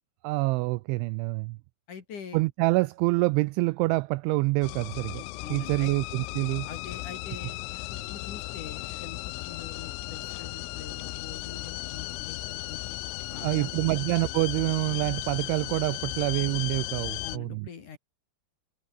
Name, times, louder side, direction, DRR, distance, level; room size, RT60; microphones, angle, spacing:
voice 1, 0.2-1.6 2.3-5.2 5.5-6.7 13.4-17.7, right 23 dB, 90° right, 2.6 m, -26 dB
voice 2, 1.9-2.4 5.4-5.9 6.6-7.6 7.9-12.8 13.3-13.7 17.2-18.0, left 7 dB, 45° left, 3.3 m, -44 dB
sound 1, 4.6-17.4, left 20 dB, 85° left, 3.4 m, -36 dB
omnidirectional pair, 6.0 m